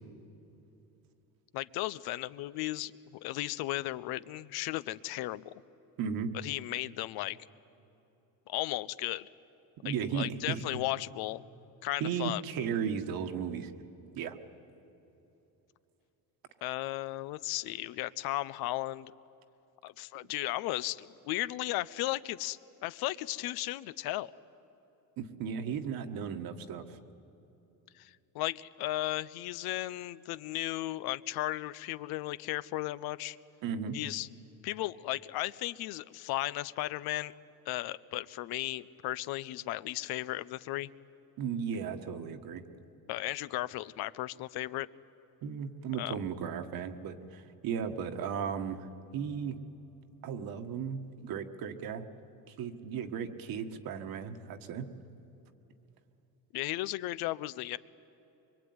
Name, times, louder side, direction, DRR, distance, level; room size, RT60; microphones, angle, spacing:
voice 1, 1.5-5.5 6.4-7.4 8.5-9.3 9.8-11.4 11.8-12.4 16.6-19.1 19.8-24.3 28.0-33.4 33.9-34.3 34.6-37.3 37.7-40.9 43.1-44.9 46.0-46.2 56.5-57.8, left 16 dB, 85° left, 17 dB, 0.7 m, -35 dB
voice 2, 6.0-6.3 9.8-10.8 12.0-13.7 14.1-14.4 25.2-27.0 33.6-34.0 41.4-42.6 45.4-48.9 49.1-49.6 50.2-52.1 52.5-54.9, right 7 dB, 70° right, 7 dB, 1.7 m, -35 dB
24.5 x 23.5 x 9.6 m, 3.0 s
cardioid pair, 130°, 37 cm